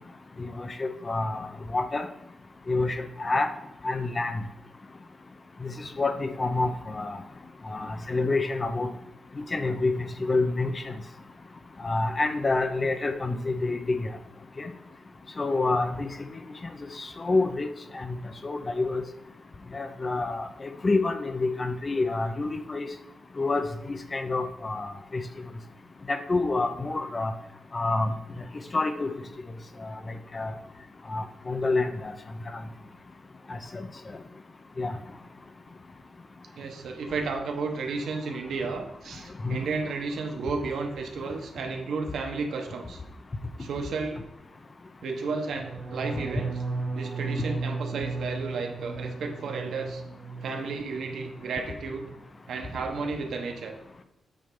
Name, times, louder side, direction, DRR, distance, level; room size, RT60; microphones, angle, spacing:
voice 1, 0.4-2.1 2.7-3.5 3.8-4.4 5.6-7.2 7.7-8.9 9.5-10.9 11.8-14.1 14.6-14.7 15.4-16.1 17.0-17.7 17.9-18.2 18.4-19.0 19.7-22.9 23.4-25.2 26.1-27.3 27.7-28.1 28.7-29.1 29.8-29.9 30.3-30.5 31.1-32.1 33.5-33.9 34.8-34.9 39.4-39.6, left 3 dB, 25° left, 8 dB, 0.6 m, -28 dB
voice 2, 36.5-43.0 43.6-44.3 45.0-46.6 46.9-50.0 50.4-52.1 52.5-53.7, right 4 dB, 80° right, 4 dB, 1.1 m, -33 dB
sound 1, 45.5-51.4 51.7-52.2 52.5-52.9, right 3 dB, 30° right, 1.4 m, -35 dB
8.6 x 3.3 x 5.4 m, 0.87 s
wide cardioid pair, 155°, 0 cm